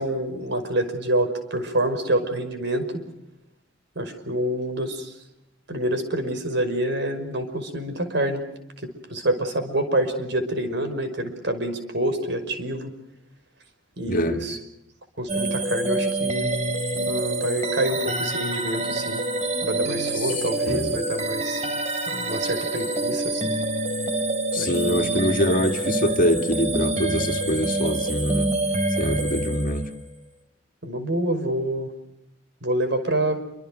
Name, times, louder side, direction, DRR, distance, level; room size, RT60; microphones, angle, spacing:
voice 1, 0.0-3.0 4.0-5.2 5.7-8.4 8.8-12.9 14.0-14.6 15.2-16.5 17.1-19.2 19.6-21.6 22.1-23.5 24.6-25.2 25.5-25.7 30.8-31.9 32.6-33.4, right 1 dB, 65° right, 5.6 m, -27 dB
voice 2, 14.0-14.4 20.2-20.3 20.7-21.0 24.5-28.6 29.0-29.9, equal, 45° left, 2.4 m, -24 dB
sound 1, 15.3-30.0, right 2 dB, 35° right, 4.5 m, -26 dB
28.5 x 26.0 x 6.4 m
head